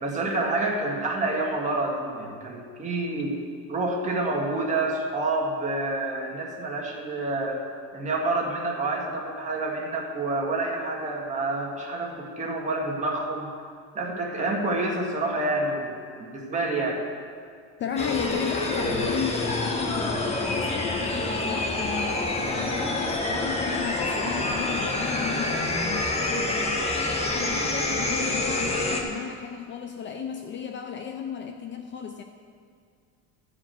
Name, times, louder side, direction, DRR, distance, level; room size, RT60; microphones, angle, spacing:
voice 1, 0.0-3.4 3.7-7.6 7.9-13.5 13.9-17.0, right 2 dB, 20° right, -2 dB, 1.8 m, -28 dB
voice 2, 17.8-26.9 27.2-32.2, left 7 dB, 35° left, 6 dB, 0.5 m, -34 dB
sound 1, 18.0-29.0, left 2 dB, 20° left, 1.2 m, -27 dB
13.0 x 5.0 x 7.7 m, 2.2 s
cardioid pair, 140°, 33 cm